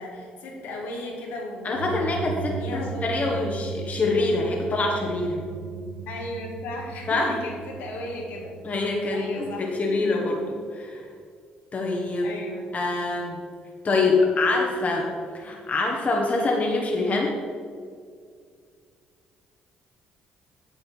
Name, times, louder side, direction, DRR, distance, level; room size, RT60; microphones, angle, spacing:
voice 1, 0.0-3.3 6.1-8.6 9.1-10.0 12.2-12.7, left 1 dB, 75° left, -2 dB, 2.1 m, -36 dB
voice 2, 1.6-5.4 7.1-7.3 8.6-11.0 11.7-12.3 12.7-13.4 13.8-15.1 15.3-17.3, left 3 dB, 40° left, -1 dB, 1.6 m, -25 dB
sound 1, 1.7-9.0, right 6 dB, 85° right, 0.5 m, -37 dB
9.1 x 7.7 x 4.7 m, 2.1 s
hypercardioid pair, 55°, 4 cm